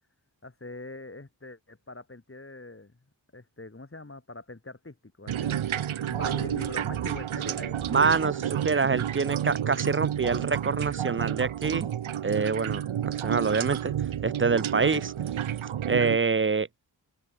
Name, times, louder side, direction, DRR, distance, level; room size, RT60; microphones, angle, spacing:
voice 1, 0.4-2.9 3.3-7.8, left 2 dB, 25° left, 4.3 m, -43 dB
sound 1, 5.3-16.2, right 10 dB, 90° right, 1.0 m, -30 dB
sound 2, 6.0-9.6, right 5 dB, 70° right, 4.3 m, -52 dB
voice 2, 7.9-11.9 12.2-13.9 14.2-15.1 15.8-16.7, right 4 dB, 25° right, 0.6 m, -26 dB
cardioid pair, 55°, 47 cm